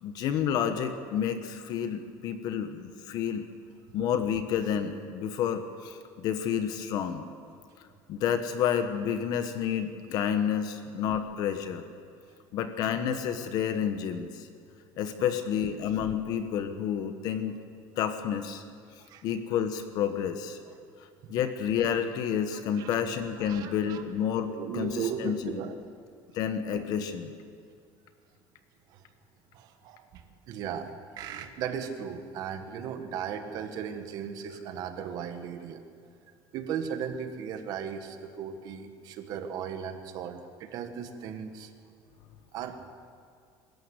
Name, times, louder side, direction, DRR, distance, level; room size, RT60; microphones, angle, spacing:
voice 1, 0.0-3.4 3.9-7.3 8.1-11.8 12.5-14.5 15.0-17.6 18.0-18.6 19.2-20.6 21.3-25.6 26.3-27.3, left 8 dB, 50° left, 8 dB, 1.2 m, -30 dB
voice 2, 22.5-22.9 23.4-24.0 24.5-25.9 26.7-26.9 28.9-29.0 29.5-30.9 31.2-35.8 36.5-41.7 42.5-42.9, right 7 dB, 50° right, 7 dB, 1.7 m, -37 dB
23.5 x 13.5 x 8.3 m, 2.3 s
cardioid pair, 170°, 8 cm